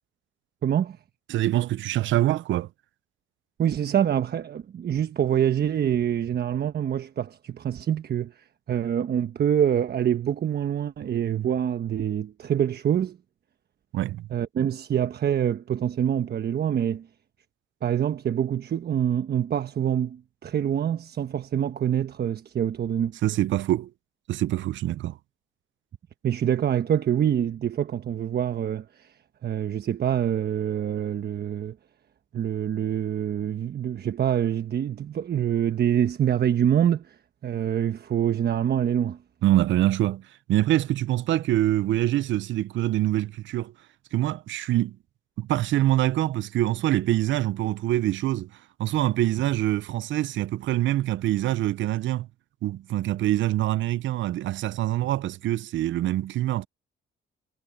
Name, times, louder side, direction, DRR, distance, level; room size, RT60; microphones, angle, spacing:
voice 1, 0.6-1.0 3.6-13.2 14.3-17.1 17.8-23.2 26.2-31.8 32.3-39.2, right 9 dB, 55° right, 1.1 m, -25 dB
voice 2, 1.3-2.7 13.9-14.3 23.2-23.9 24.3-25.2 39.4-43.7 44.1-45.0 45.4-48.5 48.8-52.3 52.6-56.7, right 14 dB, 70° right, 0.6 m, -25 dB
cardioid pair, 90°, 20 cm